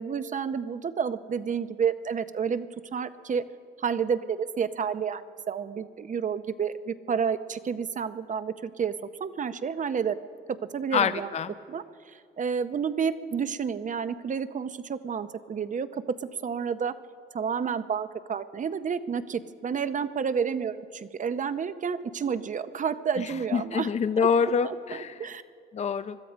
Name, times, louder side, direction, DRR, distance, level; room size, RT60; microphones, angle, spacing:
voice 1, 0.0-3.5 3.8-8.9 9.2-10.2 10.7-11.3 11.7-16.0 16.4-16.9 17.3-23.9 24.2-24.3 24.6-24.8 25.2-25.4, right 6 dB, 40° right, 13 dB, 0.7 m, -30 dB
voice 2, 10.9-11.5 23.2-25.3 25.7-26.2, left 6 dB, 35° left, 13 dB, 0.5 m, -26 dB
21.0 x 13.0 x 5.1 m, 2.3 s
cardioid pair, 90°, 20 cm